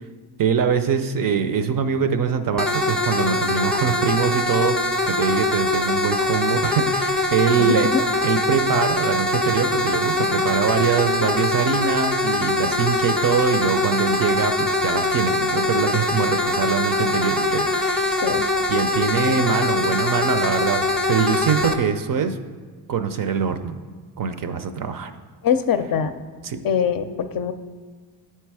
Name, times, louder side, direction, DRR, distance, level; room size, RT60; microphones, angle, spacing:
voice 1, 0.4-4.8 5.1-7.9 8.2-18.2 18.7-22.4 22.9-23.7 24.2-25.1 26.4-26.6, right 6 dB, 45° right, 9 dB, 0.5 m, -23 dB
sound 1, 2.6-21.7, left 2 dB, ahead, 0.5 m, -22 dB
voice 2, 7.6-8.1 18.2-18.5 25.4-26.1 26.6-27.5, left 7 dB, 50° left, 9 dB, 0.5 m, -23 dB
8.5 x 4.5 x 4.7 m, 1.4 s
cardioid pair, 80°, 47 cm